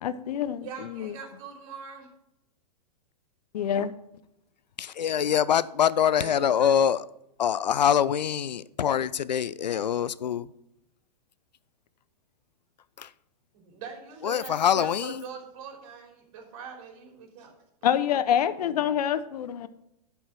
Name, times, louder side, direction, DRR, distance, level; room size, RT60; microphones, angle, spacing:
voice 1, 0.0-1.1 3.5-3.9 17.8-19.7, left 9 dB, 65° left, 0.8 m, -26 dB
voice 2, 0.6-2.1 6.2-6.8 13.5-17.5 17.8-17.9, right 5 dB, 50° right, 3.3 m, -42 dB
voice 3, 4.8-7.0 7.4-10.5 13.0-13.1 14.2-15.1, left 9 dB, 85° left, 0.5 m, -24 dB
11.5 x 5.5 x 5.9 m
hypercardioid pair, 115°, 21 cm